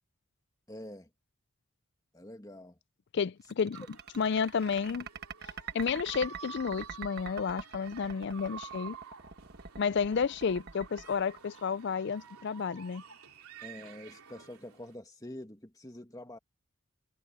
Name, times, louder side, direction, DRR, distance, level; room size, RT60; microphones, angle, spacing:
voice 1, 0.7-1.1 2.1-2.8 13.6-16.4, left 1 dB, 15° left, 2.1 m, -46 dB
voice 2, 3.1-3.8 4.2-5.1 5.7-9.0 9.8-13.0, left 6 dB, 50° left, 0.4 m, -31 dB
sound 1, 3.4-12.1, right 6 dB, 45° right, 1.3 m, -44 dB
sound 2, 3.7-15.0, right 7 dB, 90° right, 3.0 m, -50 dB
head